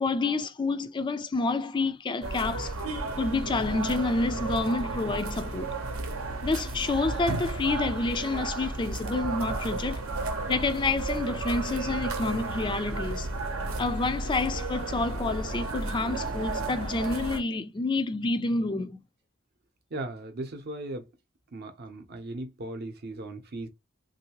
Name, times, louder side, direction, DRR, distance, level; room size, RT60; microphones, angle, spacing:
voice 1, 0.0-2.8 3.2-5.7 6.4-10.0 10.5-13.3 13.8-19.0, left 3 dB, 20° left, 0.3 m, -28 dB
sound 1, 2.2-17.4, right 3 dB, 80° right, 0.8 m, -33 dB
voice 2, 19.9-21.1 21.5-23.7, right 2 dB, 50° right, 0.7 m, -37 dB
3.1 x 2.6 x 2.9 m
head